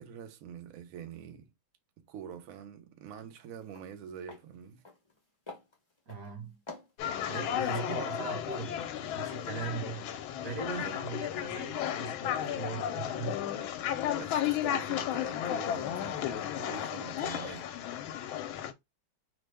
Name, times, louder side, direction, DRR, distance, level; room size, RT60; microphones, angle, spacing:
voice 1, 0.0-1.5 2.1-4.8 7.5-8.1 10.8-11.0 14.2-17.7, right 8 dB, 85° right, 0.7 m, -45 dB
sound 1, 3.2-3.3 3.6-3.9 4.2-4.4 4.8-5.2 5.5-6.3 6.7-7.4 7.9-9.2 9.5-9.7, left 3 dB, 35° left, 0.4 m, -48 dB
voice 2, 6.1-6.6 7.3-10.2 10.4-13.5, right 5 dB, 55° right, 1.1 m, -40 dB
sound 2, 7.0-18.7, left 10 dB, 85° left, 1.4 m, -34 dB
3.3 x 2.1 x 3.2 m
omnidirectional pair, 2.2 m